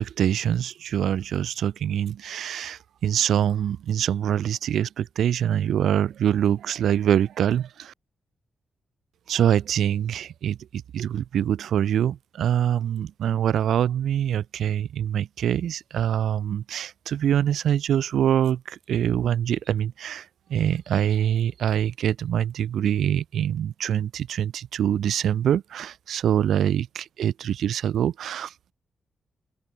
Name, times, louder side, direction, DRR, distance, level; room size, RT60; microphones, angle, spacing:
voice 1, 0.0-7.9 9.3-28.7, right 10 dB, 85° right, 0.8 m, -24 dB
open air
wide cardioid pair, 130°, 0 cm